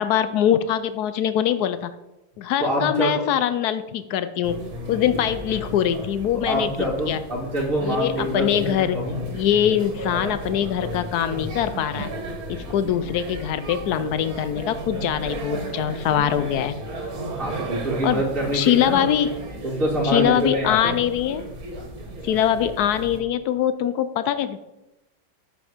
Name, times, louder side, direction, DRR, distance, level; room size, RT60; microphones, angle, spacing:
voice 1, 0.0-1.9 2.4-4.6 4.9-6.7 7.1-7.2 7.8-9.0 9.3-12.1 12.5-16.8 18.0-18.2 18.5-19.3 20.0-21.5 22.2-24.6, left 10 dB, 75° left, 12 dB, 0.9 m, -23 dB
voice 2, 2.6-3.2 6.5-9.3 17.3-19.0 19.6-21.0, right 1 dB, 30° right, -4 dB, 1.6 m, -25 dB
sound 1, 4.4-23.2, right 1 dB, 50° right, 1.8 m, -34 dB
9.4 x 6.4 x 5.0 m, 0.95 s
omnidirectional pair, 2.2 m